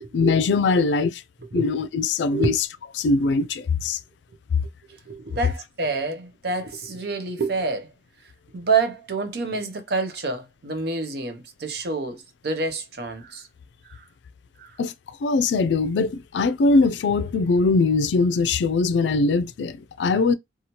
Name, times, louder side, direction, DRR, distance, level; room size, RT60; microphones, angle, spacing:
voice 1, 0.1-1.1 1.5-2.7 3.0-4.0 14.8-20.3, left 3 dB, 85° left, 0.4 m, -21 dB
voice 2, 5.1-7.9 8.5-13.5 13.9-14.0 14.6-14.7, right 4 dB, 60° right, 0.6 m, -27 dB
2.9 x 2.3 x 2.8 m
head